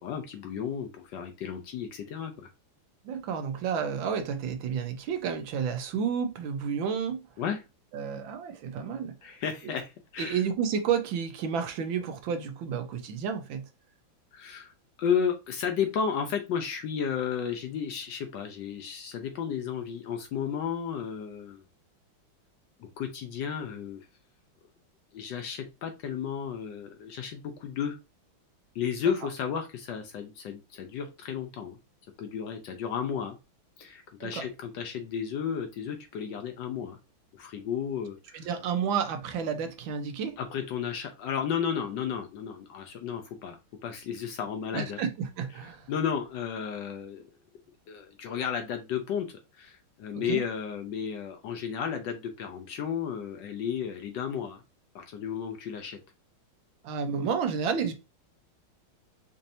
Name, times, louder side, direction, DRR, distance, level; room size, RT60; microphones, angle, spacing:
voice 1, 0.0-2.5 7.4-7.6 9.2-10.4 14.3-14.7 15.0-21.6 22.8-24.1 25.1-28.0 28.7-31.8 32.2-33.4 33.8-37.0 37.3-38.5 40.4-45.0 45.9-47.3 47.9-54.6 54.9-56.0, left 7 dB, 70° left, 1.2 m, -33 dB
voice 2, 3.0-7.2 7.9-9.2 9.6-9.8 10.2-13.6 34.2-34.5 38.3-40.4 44.7-45.9 50.1-50.4 56.8-57.9, right 7 dB, 80° right, 1.3 m, -31 dB
5.2 x 2.7 x 2.6 m
omnidirectional pair, 2.2 m